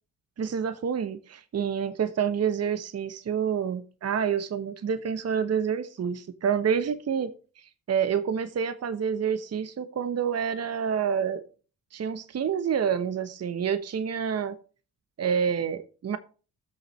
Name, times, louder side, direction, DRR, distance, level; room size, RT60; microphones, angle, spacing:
voice 1, 0.4-11.4 11.9-14.6 15.2-16.2, right 7 dB, 45° right, 12 dB, 0.9 m, -28 dB
13.5 x 6.3 x 3.1 m, 0.36 s
hypercardioid pair, 50°, 35 cm